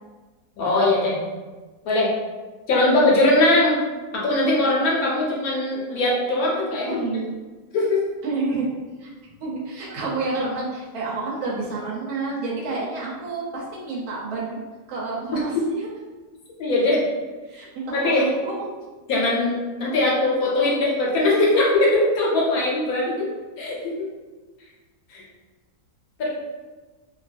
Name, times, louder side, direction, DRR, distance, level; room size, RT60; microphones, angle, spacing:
voice 1, 0.6-1.2 1.8-2.1 2.7-3.8 4.1-7.0 7.7-8.0 16.6-17.0 17.9-18.2 19.1-19.5 19.8-23.3 23.6-24.1 25.1-25.2 26.2-26.3, left 2 dB, 75° left, -4 dB, 1.1 m, -20 dB
voice 2, 6.9-7.3 8.2-8.7 9.0-9.1 9.4-14.6 14.9-15.9 17.4-18.6, right 3 dB, 75° right, -4 dB, 1.2 m, -29 dB
2.7 x 2.4 x 2.4 m, 1.3 s
omnidirectional pair, 1.7 m